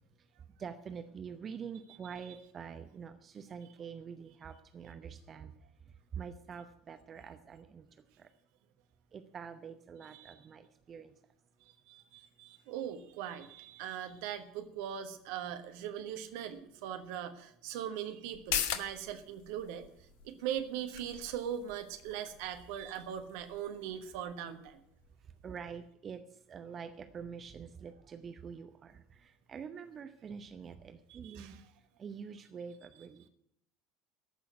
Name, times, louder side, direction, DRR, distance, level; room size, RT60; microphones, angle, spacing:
voice 1, 0.6-5.5 6.1-7.9 8.2-8.3 9.1-11.1 25.4-26.2 26.5-31.6 32.0-33.2, right 6 dB, 35° right, 9 dB, 0.9 m, -46 dB
voice 2, 2.0-2.4 10.0-10.4 11.9-19.9 20.2-24.8 31.1-31.7, right 9 dB, 60° right, 8 dB, 1.3 m, -40 dB
sound 1, 18.3-25.4 25.8-25.9, left 10 dB, 60° left, 1.0 m, -42 dB
14.0 x 6.3 x 9.4 m, 0.71 s
figure-of-eight pair, 70°, 0 cm